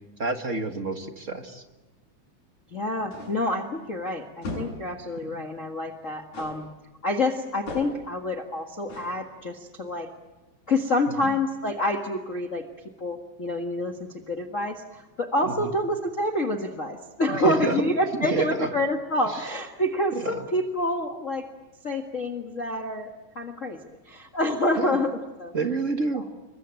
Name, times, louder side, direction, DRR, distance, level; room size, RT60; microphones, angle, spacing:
voice 1, 0.2-1.6 11.2-11.3 15.4-15.7 17.3-18.7 20.1-20.4 24.8-25.0 25.5-26.2, right 3 dB, 35° right, 6 dB, 1.4 m, -28 dB
voice 2, 2.7-6.7 7.0-10.1 10.7-12.6 13.0-21.5 21.8-23.1 23.3-23.8 24.1-25.5 26.1-26.2, left 1 dB, 30° left, 3 dB, 1.6 m, -27 dB
sound 1, 3.1-3.5 4.4-4.9 6.3-6.7 7.7-8.1 8.9-9.2, left 2 dB, 70° left, 8.5 m, -36 dB
27.5 x 23.0 x 9.0 m, 1.1 s
omnidirectional pair, 3.5 m